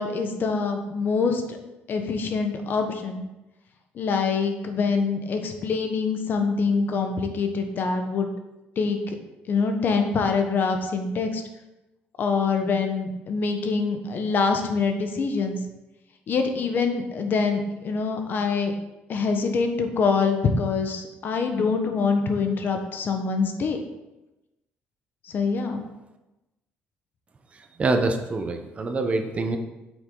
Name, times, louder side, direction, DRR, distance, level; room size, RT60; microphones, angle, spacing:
voice 1, 0.0-1.4 1.9-3.2 4.0-8.3 8.8-9.0 9.5-11.4 12.2-15.6 16.3-18.7 19.1-23.8 25.3-25.8, left 4 dB, 50° left, 5 dB, 1.1 m, -25 dB
voice 2, 27.5-29.6, right 3 dB, 30° right, 5 dB, 0.9 m, -25 dB
7.9 x 6.2 x 3.9 m, 0.99 s
cardioid pair, 110°, 4 cm